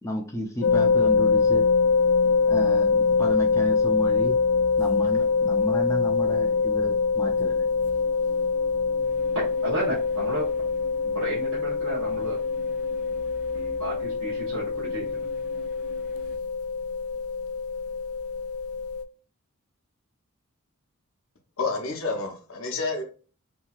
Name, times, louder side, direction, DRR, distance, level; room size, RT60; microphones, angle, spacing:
voice 1, 0.0-1.6 2.5-4.3 4.8-7.6, left 1 dB, 15° left, 0.4 m, -32 dB
sound 1, 0.6-19.0, left 5 dB, 85° left, 0.3 m, -24 dB
sound 2, 0.8-16.4, right 3 dB, 20° right, 1.3 m, -49 dB
voice 2, 9.6-10.5 11.0-12.4 13.5-15.2, right 2 dB, 70° right, 0.9 m, -33 dB
voice 3, 21.6-23.0, left 3 dB, 70° left, 0.8 m, -29 dB
2.9 x 2.7 x 2.3 m
head